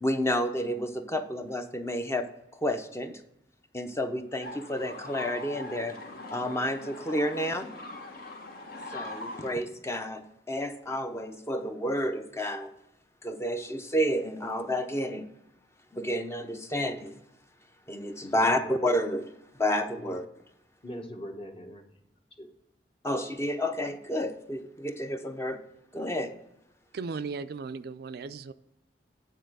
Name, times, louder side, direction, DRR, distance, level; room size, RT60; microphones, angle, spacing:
voice 1, 0.0-2.2 2.5-3.2 3.7-6.0 6.3-7.7 8.9-12.7 13.2-15.3 15.9-17.1 17.9-19.3 19.5-20.3 23.0-25.6 25.9-26.3, equal, 15° left, 7 dB, 0.6 m, -30 dB
sound 1, 4.4-9.5, left 2 dB, 55° left, 1.1 m, -41 dB
voice 2, 18.2-18.7 20.0-20.2 20.8-22.0 22.3-22.5, equal, 30° left, 4 dB, 1.1 m, -42 dB
voice 3, 26.9-28.5, right 4 dB, 60° right, 11 dB, 0.4 m, -36 dB
9.3 x 4.0 x 6.5 m, 0.84 s
head